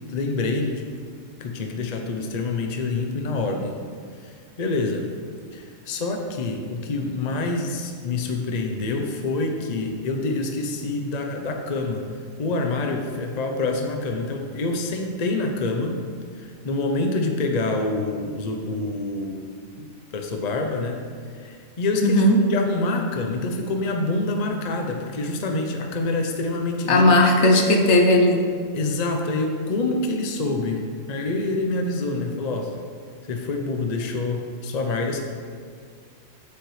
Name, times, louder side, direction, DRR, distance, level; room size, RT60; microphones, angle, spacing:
voice 1, 0.1-0.8 1.4-3.8 4.2-5.1 5.5-12.1 12.4-16.0 16.4-19.4 19.8-21.0 21.4-22.2 22.5-27.0 28.7-32.8 33.2-35.2, left 2 dB, 40° left, 3 dB, 0.6 m, -26 dB
voice 2, 22.0-22.4 26.9-28.5, left 1 dB, 60° left, 3 dB, 1.1 m, -16 dB
8.2 x 8.1 x 3.2 m, 2.1 s
omnidirectional pair, 1.4 m